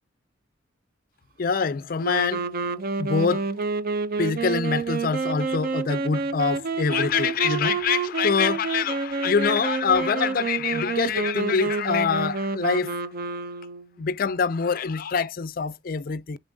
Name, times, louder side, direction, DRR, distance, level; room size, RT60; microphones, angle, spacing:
voice 1, 1.4-2.5 3.0-3.5 4.2-13.0 14.0-16.4, left 5 dB, 45° left, 0.4 m, -25 dB
sound 1, 2.0-13.9, right 4 dB, 45° right, 0.5 m, -28 dB
7.0 x 5.5 x 2.6 m
head